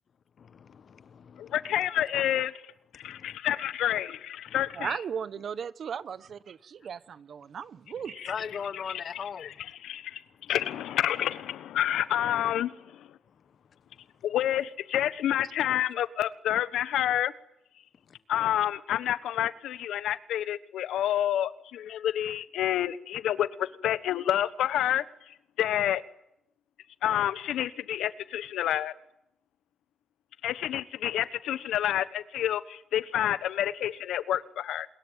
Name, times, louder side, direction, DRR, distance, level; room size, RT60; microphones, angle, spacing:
voice 1, 0.4-1.5 3.0-3.4 8.3-9.5, left 7 dB, 50° left, 1.2 m, -38 dB
voice 2, 1.4-2.5 2.9-5.0 8.2-8.3 8.7-13.1 14.2-17.3 18.3-26.0 27.0-28.9 30.4-34.9, left 11 dB, 80° left, 1.2 m, -29 dB
voice 3, 4.7-8.3, right 7 dB, 55° right, 1.0 m, -36 dB
29.0 x 21.5 x 9.0 m
cardioid pair, 90°, 0 cm